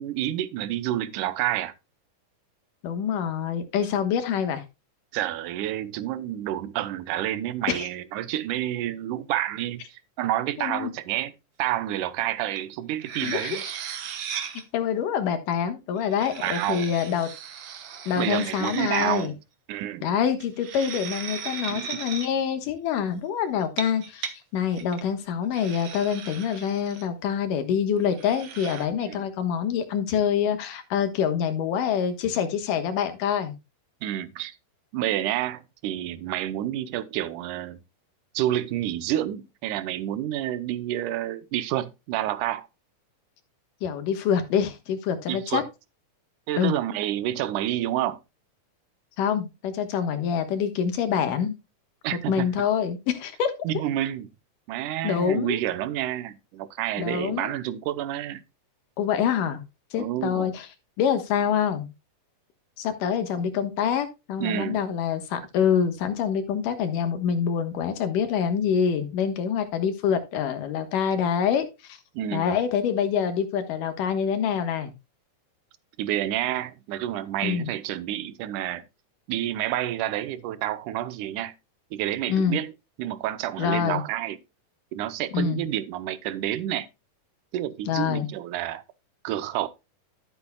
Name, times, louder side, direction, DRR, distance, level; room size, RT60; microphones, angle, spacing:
voice 1, 0.0-1.7 5.1-11.3 11.6-13.6 16.4-16.9 18.1-19.4 19.7-20.1 21.7-21.9 29.0-29.2 34.0-34.6 34.9-37.8 38.3-42.7 45.3-45.7 46.5-48.2 52.0-52.5 53.6-54.3 54.7-58.4 59.9-60.5 64.4-64.8 72.1-72.4 76.0-78.8 79.3-81.5 81.9-82.7 83.0-84.4 84.9-86.9 87.5-88.8 89.2-89.7, right 13 dB, 80° right, 2.2 m, -29 dB
voice 2, 2.8-4.6 7.7-7.8 10.6-10.9 13.2-13.6 14.7-17.3 18.1-19.3 20.0-33.6 43.8-45.6 46.6-46.7 49.2-51.5 52.1-53.5 55.0-55.6 57.0-57.5 59.0-59.6 59.9-60.7 61.0-61.9 62.8-72.0 72.3-74.9 77.4-77.7 82.3-82.6 83.6-84.0 85.3-85.6 87.9-88.3, left 8 dB, 85° left, 2.9 m, -26 dB
sound 1, 12.6-12.7 13.0-14.6 16.0-19.3 20.4-22.3 23.6-24.3 24.7-25.0 25.5-27.1 28.1-28.9, right 7 dB, 60° right, 1.8 m, -36 dB
13.0 x 8.3 x 2.2 m
omnidirectional pair, 3.7 m